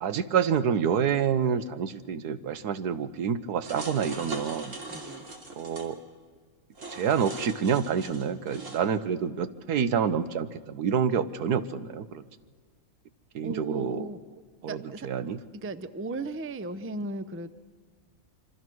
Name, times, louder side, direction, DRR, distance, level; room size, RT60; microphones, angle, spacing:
voice 1, 0.0-4.7 5.6-6.0 6.9-12.2 13.3-14.1 14.6-15.4, right 7 dB, 85° right, 12 dB, 1.5 m, -28 dB
sound 1, 3.6-5.9 6.7-8.8, right 2 dB, 55° right, 3.2 m, -40 dB
voice 2, 4.9-5.2 13.4-14.4 14.7-15.1 15.6-17.5, right 2 dB, 15° right, 12 dB, 0.4 m, -36 dB
27.0 x 24.5 x 6.3 m, 1.5 s
omnidirectional pair, 1.6 m